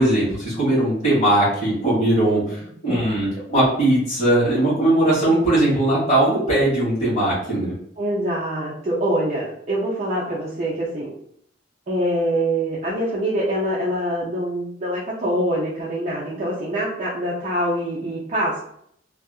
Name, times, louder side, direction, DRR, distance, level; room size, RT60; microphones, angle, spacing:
voice 1, 0.0-7.7, right 1 dB, 35° left, -8 dB, 1.5 m, -19 dB
voice 2, 8.0-11.1 11.9-18.6, right 1 dB, 40° right, -6 dB, 0.5 m, -24 dB
2.7 x 2.4 x 2.3 m, 0.69 s
head